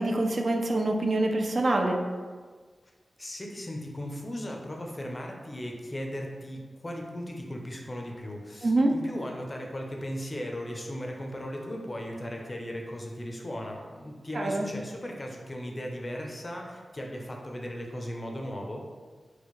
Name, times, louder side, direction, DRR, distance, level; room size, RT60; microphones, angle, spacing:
voice 1, 0.0-2.0 8.6-8.9 14.3-14.7, right 2 dB, 50° right, 2 dB, 0.3 m, -25 dB
voice 2, 3.2-18.9, equal, 25° left, 1 dB, 0.5 m, -37 dB
4.3 x 2.1 x 3.0 m, 1.5 s
wide cardioid pair, 105°, 0 cm